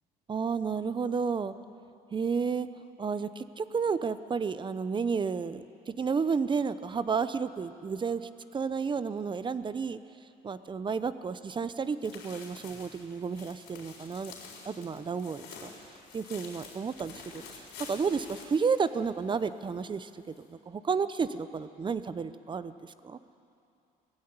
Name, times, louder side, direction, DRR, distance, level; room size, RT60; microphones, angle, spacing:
voice 1, 0.3-1.5 2.1-2.7 3.0-10.0 10.4-14.3 14.6-15.7 16.1-23.2, right 5 dB, 30° right, 13 dB, 0.8 m, -32 dB
sound 1, 11.7-19.4 19.7-19.8 20.3-20.4, left 5 dB, 90° left, 4.2 m, -48 dB
19.5 x 15.5 x 9.8 m, 2.7 s
cardioid pair, 110°, 17 cm